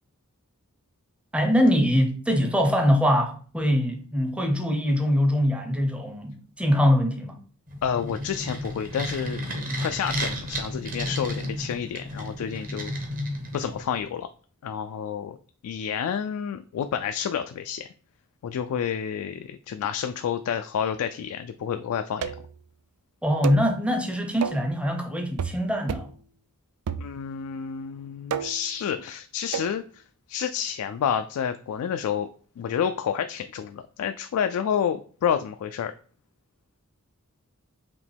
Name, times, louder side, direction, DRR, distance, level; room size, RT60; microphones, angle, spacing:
voice 1, 1.3-7.4 23.2-26.1, equal, 5° right, 0.6 m, -23 dB
sound 1, 7.7-14.0, equal, 40° right, 1.0 m, -33 dB
voice 2, 7.8-9.4 9.8-12.9 13.5-14.3 14.6-15.4 15.6-17.9 18.4-22.3 27.0-30.0 30.3-32.3 32.6-35.9, left 8 dB, 75° left, 0.3 m, -29 dB
sound 2, 22.2-22.6 23.4-23.7 24.4-24.7 25.4-25.6 25.9-26.2 26.9-27.4 28.3-28.7 29.5-29.8, right 7 dB, 80° right, 0.4 m, -31 dB
5.1 x 2.9 x 3.3 m
head